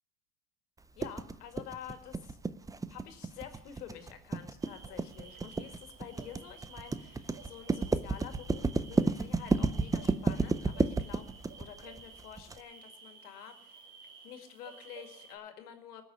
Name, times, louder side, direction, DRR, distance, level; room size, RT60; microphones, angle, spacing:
voice 1, 1.0-2.4 2.9-11.3 11.6-13.8 14.2-16.0, left 9 dB, 90° left, 7 dB, 2.1 m, -48 dB
sound 1, 1.0-12.6, right 3 dB, 10° right, 0.4 m, -31 dB
sound 2, 4.6-15.4, right 5 dB, 90° right, 2.6 m, -54 dB
19.5 x 6.5 x 6.8 m, 0.80 s
hypercardioid pair, 95°, 45 cm